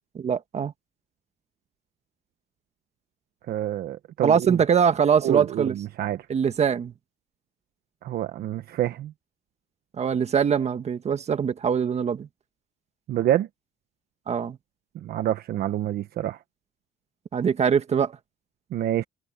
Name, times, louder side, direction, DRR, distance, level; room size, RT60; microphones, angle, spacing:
voice 1, 0.1-0.7 4.2-5.8 6.3-6.9 10.0-12.3 14.3-14.6 17.3-18.2, right 7 dB, 40° right, 1.5 m, -23 dB
voice 2, 3.5-4.6 5.2-6.3 8.0-9.1 13.1-13.5 15.0-16.4 18.7-19.0, right 12 dB, 65° right, 1.1 m, -27 dB
cardioid pair, 110°, 17 cm